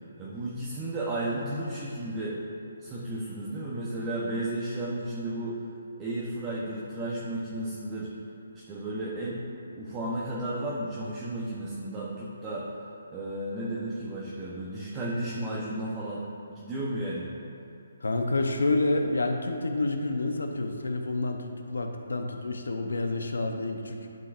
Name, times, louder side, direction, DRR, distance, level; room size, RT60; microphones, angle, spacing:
voice 1, 0.2-2.4 2.8-5.6 6.0-8.1 8.5-9.4 9.7-12.7 13.1-16.2 16.5-17.3, right 1 dB, 20° right, -7 dB, 0.9 m, -33 dB
voice 2, 18.0-24.0, left 2 dB, 90° left, 4 dB, 0.8 m, -28 dB
11.5 x 5.7 x 2.5 m, 2.9 s
hypercardioid pair, 155°, 0 cm